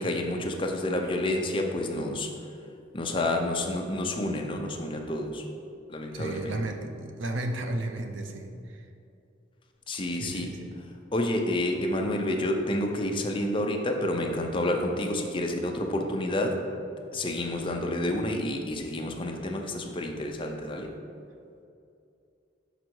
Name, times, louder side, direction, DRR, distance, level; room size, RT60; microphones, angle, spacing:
voice 1, 0.0-2.3 2.9-5.4 5.9-6.6 9.9-10.5 11.1-16.6 17.1-20.9, left 1 dB, 25° left, 2 dB, 0.6 m, -29 dB
voice 2, 6.1-8.8 10.1-10.7, right 2 dB, 90° right, 5 dB, 0.6 m, -34 dB
6.1 x 5.0 x 4.5 m, 2.6 s
head